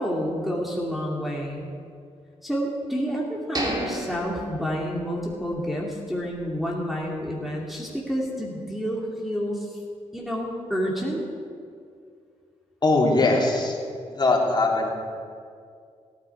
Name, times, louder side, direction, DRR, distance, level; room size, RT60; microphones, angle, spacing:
voice 1, 0.0-1.7 2.4-9.8 10.1-11.2, equal, ahead, -4 dB, 2.6 m, -29 dB
sound 1, 3.5-5.5 5.8-5.9 6.4-6.6, right 1 dB, 35° right, 3.1 m, -32 dB
voice 2, 12.8-13.8 14.1-14.9, left 2 dB, 35° left, -2 dB, 3.3 m, -21 dB
17.5 x 9.7 x 4.8 m, 2.2 s
supercardioid pair, 55°, 13 cm